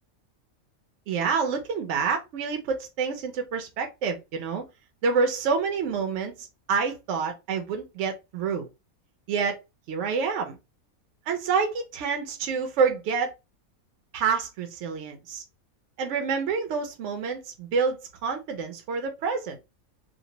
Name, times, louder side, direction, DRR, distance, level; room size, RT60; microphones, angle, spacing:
voice 1, 1.1-4.6 5.0-8.7 9.3-9.6 9.9-10.6 11.3-13.3 14.1-15.4 16.0-19.6, right 5 dB, 65° right, 0.8 m, -27 dB
2.5 x 2.0 x 2.7 m
omnidirectional pair, 1.5 m